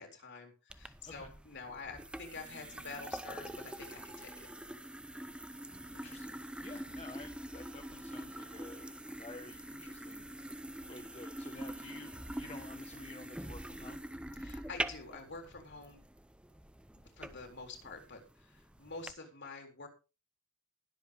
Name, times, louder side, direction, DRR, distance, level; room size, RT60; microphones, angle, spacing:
voice 1, 0.0-4.5 14.4-16.0 17.0-19.9, left 4 dB, 55° left, 3 dB, 3.8 m, -48 dB
sound 1, 0.7-19.1, right 1 dB, 5° right, 0.6 m, -45 dB
voice 2, 5.9-10.5 10.9-14.0, left 2 dB, 30° left, 4 dB, 1.2 m, -51 dB
21.0 x 7.9 x 3.5 m, 0.31 s
head